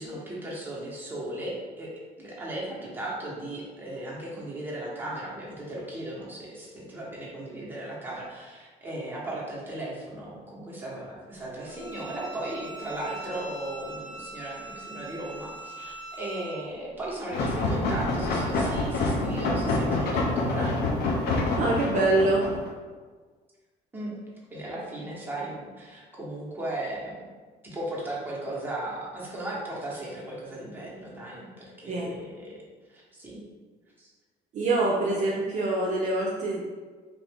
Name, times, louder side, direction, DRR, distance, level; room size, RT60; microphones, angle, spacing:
voice 1, 0.0-1.9 2.2-20.8 23.9-24.2 24.5-27.2 27.6-32.6 32.9-33.4 34.0-34.1, right 1 dB, 10° right, -6 dB, 1.0 m, -36 dB
Bowed string instrument, 11.7-16.6, right 2 dB, 45° left, 0.9 m, -42 dB
sound 1, 17.3-22.7, left 2 dB, 70° left, 0.6 m, -27 dB
voice 2, 21.6-22.4 31.9-32.1 34.5-36.7, right 2 dB, 45° right, -4 dB, 0.5 m, -25 dB
3.0 x 2.5 x 3.5 m, 1.5 s
cardioid pair, 110°, 17 cm